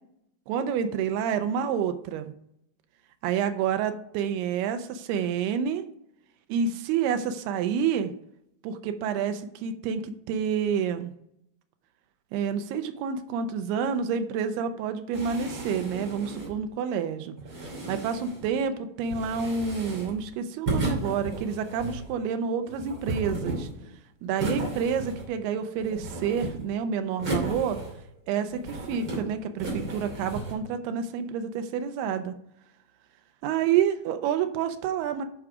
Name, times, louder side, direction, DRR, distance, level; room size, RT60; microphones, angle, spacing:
voice 1, 0.5-2.3 3.2-5.9 6.5-8.1 8.6-11.1 12.3-17.3 17.9-23.7 24.2-27.8 28.3-32.3 33.4-35.2, right 7 dB, 80° right, 8 dB, 2.6 m, -28 dB
sound 1, 15.1-16.6 17.4-18.5 19.0-20.2 20.7-22.1 22.7-23.9 24.4-25.4 25.8-26.7 27.2-28.2 28.5-29.2 29.6-30.5, right 2 dB, 35° right, 2.9 m, -34 dB
11.0 x 4.8 x 4.9 m, 0.74 s
omnidirectional pair, 4.9 m